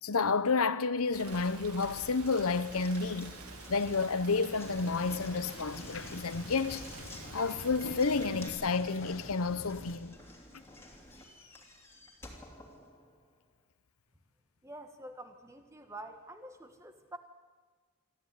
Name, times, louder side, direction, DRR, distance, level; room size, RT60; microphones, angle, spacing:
voice 1, 0.0-3.4 3.7-6.8 7.3-10.1, left 4 dB, 80° left, 0.9 m, -30 dB
Rain, 1.1-8.5, right 3 dB, 90° right, 2.9 m, -48 dB
Knock, 1.3-13.4, left 1 dB, 10° left, 2.9 m, -52 dB
sound 1, 4.6-10.0, left 2 dB, 60° left, 1.3 m, -46 dB
voice 2, 14.6-17.2, right 1 dB, 15° right, 1.5 m, -47 dB
25.0 x 14.0 x 9.6 m
head